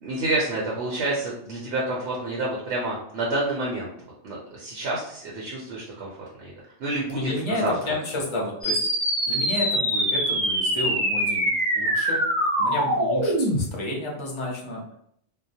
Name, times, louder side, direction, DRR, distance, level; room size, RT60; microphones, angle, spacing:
voice 1, 0.0-3.9 4.2-6.1 6.4-6.5 6.8-7.9, right 2 dB, 70° right, -4 dB, 0.9 m, -28 dB
voice 2, 7.1-8.8 9.3-12.2 12.6-14.8, left 1 dB, 35° left, -3 dB, 0.5 m, -31 dB
sound 1, 8.6-13.6, right 1 dB, 30° right, 0.4 m, -24 dB
2.2 x 2.0 x 2.6 m, 0.69 s
omnidirectional pair, 1.2 m